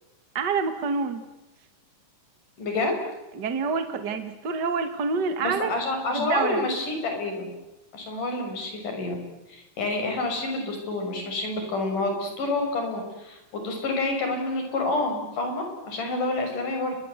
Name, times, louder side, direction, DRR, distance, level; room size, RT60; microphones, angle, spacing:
voice 1, 0.3-1.2 3.3-5.7 6.1-6.6, right 5 dB, 60° right, 9 dB, 1.0 m, -27 dB
voice 2, 2.6-2.9 5.4-7.5 7.9-9.2 9.5-17.0, left 2 dB, 50° left, 4 dB, 7.2 m, -28 dB
29.0 x 22.5 x 8.1 m, 0.98 s
omnidirectional pair, 4.7 m